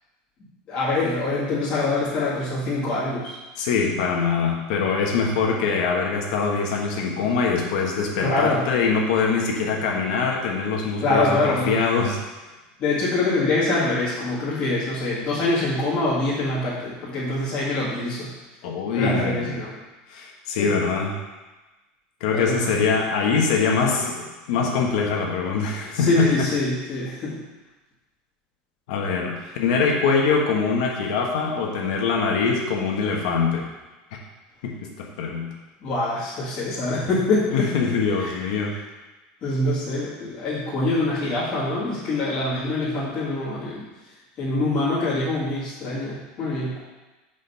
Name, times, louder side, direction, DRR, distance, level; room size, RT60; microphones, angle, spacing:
voice 1, 0.7-3.4 8.2-8.6 11.0-11.7 12.8-18.3 18.9-19.7 20.6-20.7 22.3-22.7 25.8-27.4 35.8-37.7 38.2-38.4 38.7-38.8 39.4-43.9 44.4-46.8, left 2 dB, 30° left, -10 dB, 1.9 m, -24 dB
voice 2, 3.6-12.2 18.6-19.5 20.1-21.1 22.2-26.3 28.9-33.7 34.6-35.5 37.5-38.7, left 5 dB, 70° left, 0 dB, 1.3 m, -23 dB
6.4 x 5.1 x 5.6 m, 1.1 s
supercardioid pair, 175°, 4 cm